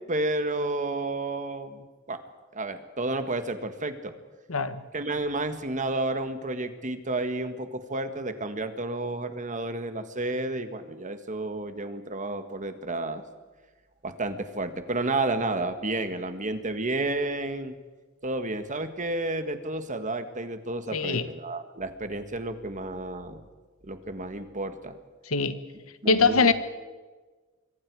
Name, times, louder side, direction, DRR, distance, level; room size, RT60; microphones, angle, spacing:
voice 1, 0.0-2.2 2.5-4.1 4.9-13.2 14.0-17.8 18.2-23.4 23.8-25.0 26.0-26.5, right 2 dB, 35° right, 1.7 m, -31 dB
voice 2, 4.5-4.8 20.9-21.3 25.3-25.6 26.1-26.5, left 4 dB, 75° left, 1.3 m, -22 dB
25.5 x 23.5 x 4.9 m
head